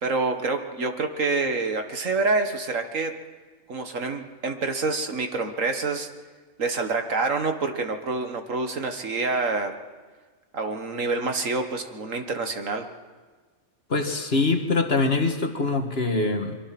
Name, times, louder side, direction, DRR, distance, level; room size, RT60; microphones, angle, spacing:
voice 1, 0.0-3.1 3.7-6.1 6.6-9.7 10.5-12.9, right 3 dB, 65° right, 6 dB, 1.9 m, -27 dB
voice 2, 13.9-16.6, left 3 dB, 45° left, 4 dB, 2.0 m, -24 dB
23.5 x 23.5 x 6.0 m, 1.4 s
omnidirectional pair, 1.5 m